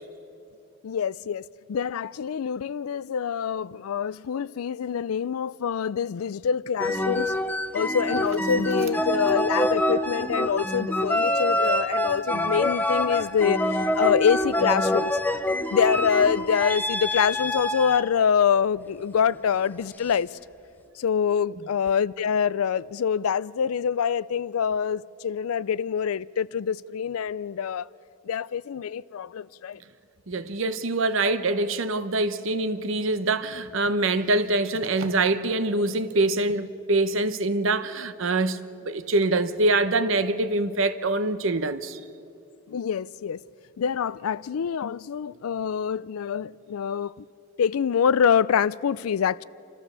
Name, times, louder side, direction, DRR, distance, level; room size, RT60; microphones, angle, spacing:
voice 1, 0.8-1.4 1.7-7.3 7.7-13.6 13.9-15.1 15.7-20.3 21.0-27.9 28.3-29.8 42.7-43.4 43.8-47.1 47.6-49.4, left 7 dB, 90° left, 0.4 m, -25 dB
Big old musicbox, 6.8-18.1 19.3-19.6, left 1 dB, 10° left, 0.5 m, -26 dB
voice 2, 30.3-42.0, right 2 dB, 70° right, 0.9 m, -24 dB
28.0 x 13.5 x 6.8 m
head